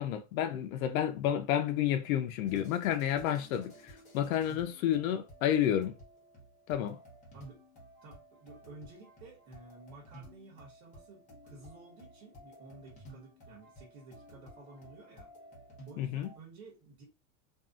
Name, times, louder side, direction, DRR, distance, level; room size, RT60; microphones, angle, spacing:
voice 1, 0.0-6.0 6.7-7.0 16.0-16.3, left 10 dB, 85° left, 0.5 m, -30 dB
sound 1, 2.5-16.4, right 1 dB, 20° left, 0.8 m, -54 dB
voice 2, 8.0-15.3 15.9-17.0, right 3 dB, 55° right, 1.2 m, -53 dB
2.6 x 2.3 x 2.3 m
supercardioid pair, 155°, 40 cm